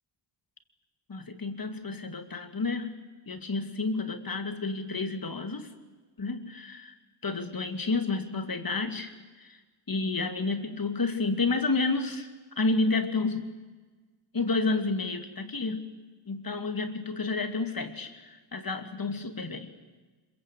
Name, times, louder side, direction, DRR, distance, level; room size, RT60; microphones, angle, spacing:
voice 1, 1.1-2.9 3.3-5.7 6.2-7.0 7.2-9.6 9.9-12.3 12.6-13.5 14.3-15.9 16.3-19.7, left 3 dB, 45° left, 7 dB, 2.4 m, -30 dB
26.0 x 23.0 x 8.4 m, 1.3 s
wide cardioid pair, 105°, 50 cm